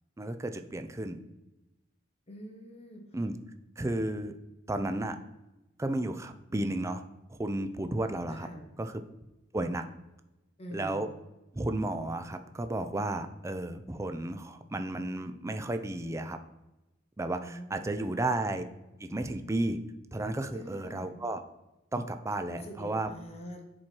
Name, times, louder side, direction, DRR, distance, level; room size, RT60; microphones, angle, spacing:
voice 1, 0.2-1.2 3.1-3.4 3.8-4.3 4.7-5.2 5.8-7.0 7.3-8.5 8.8-9.0 9.5-9.8 10.7-11.1 11.5-16.4 17.2-18.6 19.0-19.8 20.1-21.4 21.9-23.1, right 2 dB, 15° right, 8 dB, 0.4 m, -33 dB
voice 2, 2.3-3.1 8.3-8.7 10.6-11.0 17.4-18.2 20.5-21.1 22.5-23.6, equal, 30° left, 2 dB, 1.1 m, -45 dB
7.5 x 4.4 x 4.4 m, 0.99 s
head